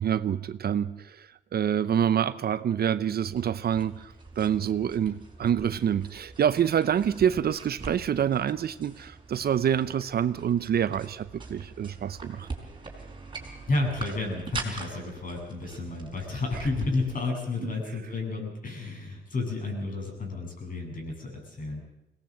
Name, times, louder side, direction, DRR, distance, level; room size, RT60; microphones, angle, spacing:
voice 1, 0.0-12.5 17.6-17.7, right 9 dB, 50° right, 15 dB, 0.7 m, -27 dB
sound 1, 3.2-17.2, right 3 dB, 25° right, 5.1 m, -43 dB
voice 2, 13.7-21.8, left 3 dB, 45° left, 2 dB, 7.9 m, -31 dB
21.5 x 18.5 x 7.7 m, 0.89 s
cardioid pair, 90°, 20 cm